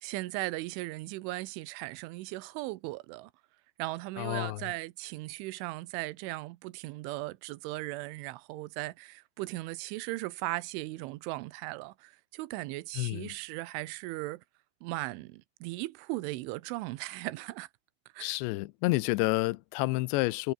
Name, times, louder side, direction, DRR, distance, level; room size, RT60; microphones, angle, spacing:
voice 1, 0.0-3.3 3.8-14.4 14.8-17.7 18.1-18.4, right 20 dB, 85° right, 3.3 m, -37 dB
voice 2, 4.2-4.6 12.9-13.4 18.2-20.5, left 21 dB, 80° left, 2.8 m, -29 dB
omnidirectional pair, 5.5 m